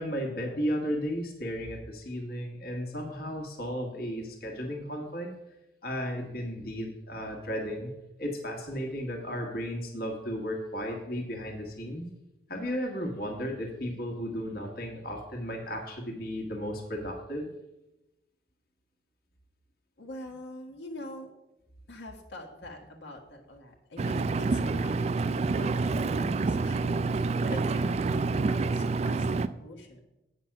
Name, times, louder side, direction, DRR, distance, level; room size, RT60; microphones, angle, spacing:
voice 1, 0.0-5.3 5.8-7.9 8.2-12.1 12.5-17.5, equal, 60° left, 1 dB, 1.4 m, -34 dB
voice 2, 20.0-21.3 21.9-30.0, left 1 dB, 90° left, 0 dB, 1.5 m, -44 dB
Engine, 24.0-29.5, right 3 dB, 35° right, 0.3 m, -28 dB
8.6 x 5.9 x 5.8 m, 0.94 s
head